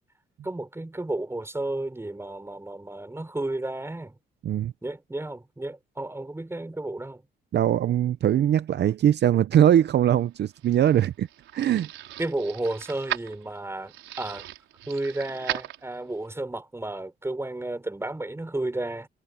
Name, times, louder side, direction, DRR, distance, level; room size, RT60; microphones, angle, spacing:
voice 1, 0.4-4.2 4.8-7.2 12.2-14.5 14.9-19.1, right 2 dB, 15° right, 4.9 m, -32 dB
voice 2, 7.5-11.3 11.5-11.9, right 10 dB, 60° right, 0.7 m, -21 dB
sound 1, 10.3-16.3, right 13 dB, 90° right, 4.7 m, -38 dB
cardioid pair, 90°, 20 cm